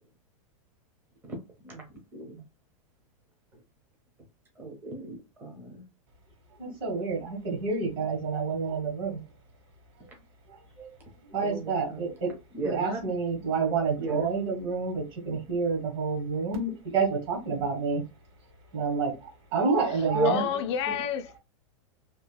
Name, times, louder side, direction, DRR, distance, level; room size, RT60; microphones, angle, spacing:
voice 1, 2.1-2.4 4.6-5.8 11.4-12.1 12.5-13.0 14.0-14.3 20.1-20.6, right 2 dB, 10° right, 0.7 m, -34 dB
voice 2, 6.6-9.2 10.8-10.9 11.3-12.3 12.6-18.0 18.7-20.4, right 4 dB, 50° right, 1.6 m, -29 dB
voice 3, 20.2-21.4, left 9 dB, 55° left, 0.4 m, -29 dB
2.8 x 2.6 x 2.2 m
supercardioid pair, 145°, 18 cm